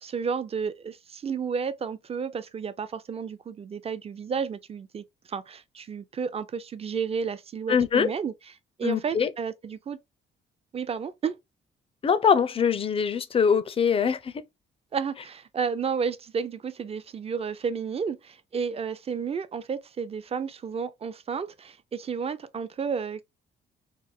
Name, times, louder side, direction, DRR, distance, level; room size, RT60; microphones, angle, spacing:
voice 1, 0.0-8.3 8.8-10.0 10.7-11.4 14.9-23.3, right 6 dB, 30° right, 0.4 m, -32 dB
voice 2, 7.7-8.1 8.8-9.3 12.0-14.3, left 7 dB, 30° left, 0.4 m, -23 dB
3.3 x 2.1 x 3.5 m
cardioid pair, 90°, 20 cm